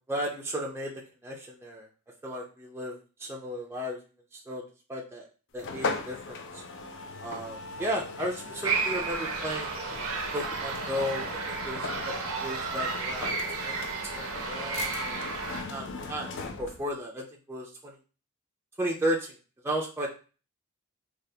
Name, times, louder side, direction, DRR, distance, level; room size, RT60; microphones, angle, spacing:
voice 1, 0.1-0.9 1.2-1.9 2.2-4.0 4.3-4.6 4.9-5.3 5.5-6.6 7.2-9.7 10.3-12.1 12.4-13.4 13.6-15.3 15.7-18.0 18.8-19.4 19.6-20.1, equal, 10° right, -2 dB, 0.4 m, -34 dB
sound 1, 5.6-16.9, left 3 dB, 55° left, 0.4 m, -38 dB
sound 2, 8.6-15.6, right 4 dB, 85° right, 0.6 m, -33 dB
3.3 x 2.3 x 2.7 m, 0.36 s
head